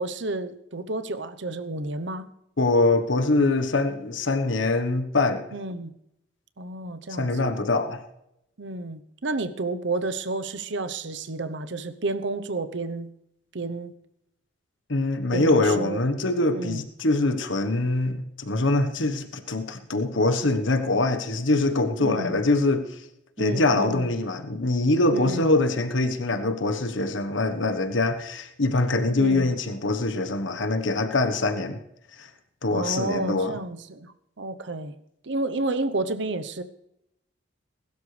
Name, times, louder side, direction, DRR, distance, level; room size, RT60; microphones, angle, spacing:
voice 1, 0.0-2.3 5.5-5.9 6.6-7.5 8.6-13.1 13.5-13.9 15.3-16.0 16.5-16.8 22.0-22.4 23.4-24.1 25.1-25.5 29.2-29.5 32.7-34.9 35.2-36.6, right 2 dB, 65° right, 0.9 m, -31 dB
voice 2, 2.6-5.5 7.1-8.0 14.9-23.0 23.4-31.8 32.1-32.3 32.6-33.6, left 2 dB, 75° left, 1.3 m, -24 dB
21.0 x 12.5 x 3.4 m
head